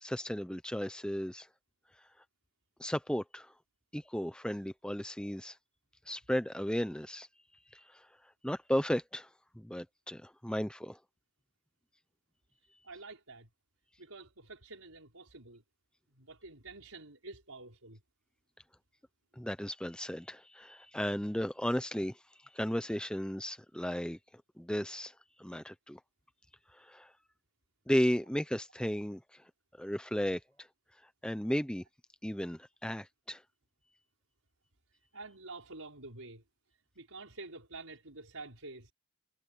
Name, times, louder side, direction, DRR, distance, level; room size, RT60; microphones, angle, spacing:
voice 1, 0.0-1.5 2.0-2.1 2.8-3.5 3.9-5.6 6.1-7.3 7.7-8.1 8.4-9.3 9.5-11.0 19.3-24.2 24.6-26.0 26.7-27.1 27.9-29.5 29.8-30.7 31.2-31.8 32.2-33.4, equal, 5° left, 0.7 m, -35 dB
voice 2, 12.8-13.5 14.0-15.6 16.1-18.0 35.1-36.4 37.0-38.9, right 3 dB, 80° right, 5.6 m, -48 dB
head